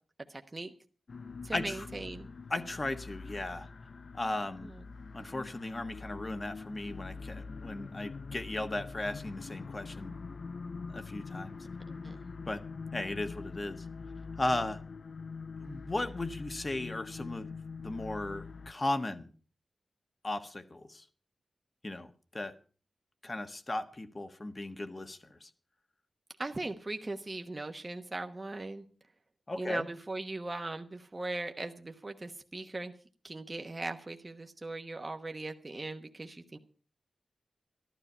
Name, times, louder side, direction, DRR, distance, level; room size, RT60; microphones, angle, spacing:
voice 1, 0.3-0.7 1.4-2.3 4.6-4.8 11.9-12.2 26.4-28.9 29.6-32.9 33.2-36.6, right 2 dB, 25° right, 5 dB, 1.0 m, -39 dB
sound 1, 1.1-18.7, left 4 dB, 55° left, 0.6 m, -44 dB
voice 2, 1.5-1.9 2.5-3.7 4.1-4.7 5.1-10.1 10.9-11.6 12.5-12.6 12.9-13.8 14.4-14.8 15.6-17.5 17.8-19.3 20.2-21.0 21.8-22.1 22.3-22.5 23.2-25.5 29.5-29.9, left 2 dB, 30° left, 9 dB, 1.3 m, -36 dB
13.5 x 12.5 x 5.5 m, 0.39 s
wide cardioid pair, 115°, 0 cm